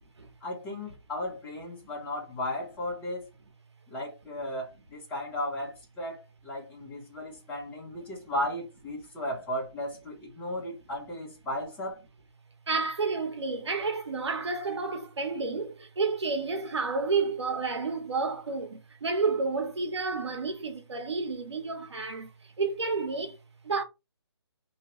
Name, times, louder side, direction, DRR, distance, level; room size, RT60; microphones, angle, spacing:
voice 1, 0.4-3.3 3.9-12.0, left 1 dB, 10° left, 0.9 m, -35 dB
voice 2, 12.7-22.3 22.6-23.4 23.6-23.8, right 4 dB, 75° right, 1.1 m, -30 dB
2.8 x 2.2 x 3.0 m
hypercardioid pair, 160°, 14 cm